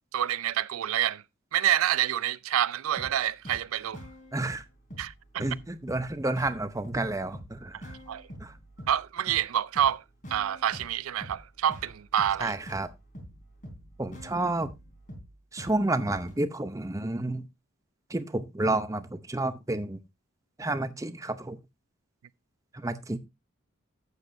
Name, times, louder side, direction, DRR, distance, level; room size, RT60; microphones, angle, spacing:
voice 1, 0.1-1.2 1.5-4.0 5.0-5.4 8.1-8.3 8.9-10.0 10.3-12.6, right 10 dB, 90° right, 0.4 m, -27 dB
sound 1, 3.0-16.4, equal, 40° left, 3.5 m, -46 dB
voice 2, 4.3-4.6 5.4-8.0 8.4-8.5 12.4-12.9 14.0-14.7 15.5-17.5 18.1-20.0 20.6-21.6 22.7-23.2, right 2 dB, 15° right, 0.7 m, -30 dB
12.0 x 8.2 x 2.7 m
head